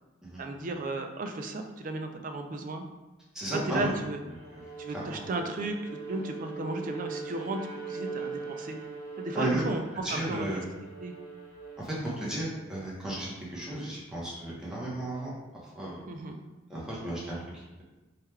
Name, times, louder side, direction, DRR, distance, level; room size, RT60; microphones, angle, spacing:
voice 1, 0.4-2.8 3.5-4.2 4.8-7.6 7.9-8.8 9.2-10.5 11.0-11.1 16.1-16.4, right 2 dB, 40° right, 5 dB, 0.4 m, -34 dB
voice 2, 3.3-3.9 4.5-4.6 4.9-5.3 9.3-9.7 10.0-10.6 11.8-15.3 15.7-16.0 16.7-17.8, right 1 dB, 5° right, -7 dB, 0.9 m, -34 dB
Bowed string instrument, 4.3-12.7, right 4 dB, 75° right, 1.1 m, -41 dB
3.3 x 2.4 x 4.3 m, 1.1 s
head